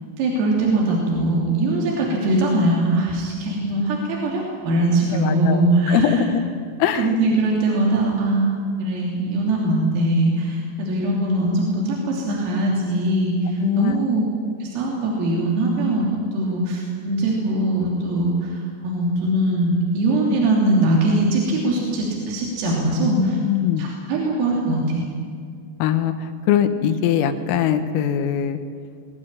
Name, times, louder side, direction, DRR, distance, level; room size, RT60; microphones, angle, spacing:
voice 1, 0.2-6.1 7.0-8.5 8.8-14.2 14.6-16.1 16.3-23.4 23.8-25.1, right 1 dB, 80° right, -3 dB, 5.8 m, -21 dB
voice 2, 5.1-5.6 5.9-6.4 6.8-7.1 13.6-14.0 23.0-23.9 25.8-28.6, left 9 dB, 80° left, 9 dB, 3.8 m, -21 dB
21.5 x 17.5 x 10.0 m, 2.1 s
omnidirectional pair, 6.0 m